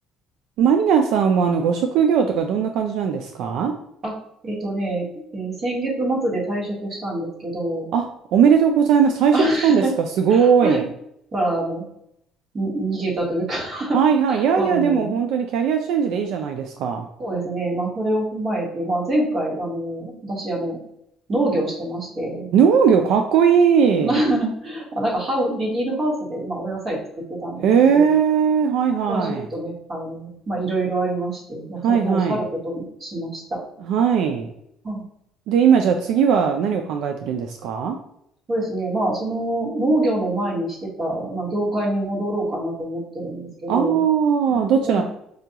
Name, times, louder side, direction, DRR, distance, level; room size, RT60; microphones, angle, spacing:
voice 1, 0.6-3.7 7.9-8.0 8.3-9.4 9.6-9.8 10.2-10.8 13.9-17.1 22.5-24.1 27.6-29.5 31.8-32.4 33.8-34.5 35.5-38.0 43.7-45.0, right 7 dB, 70° right, 5 dB, 0.3 m, -18 dB
voice 2, 4.4-5.0 5.3-7.9 9.3-9.9 10.3-10.8 11.3-11.8 12.5-14.0 14.3-15.1 17.2-20.8 21.3-22.5 24.0-27.0 27.3-28.1 29.0-33.6 34.8-35.0 38.5-44.0 44.5-45.0, right 1 dB, 30° right, -2 dB, 1.2 m, -25 dB
4.8 x 2.3 x 2.8 m, 0.75 s
cardioid pair, 135°, 0 cm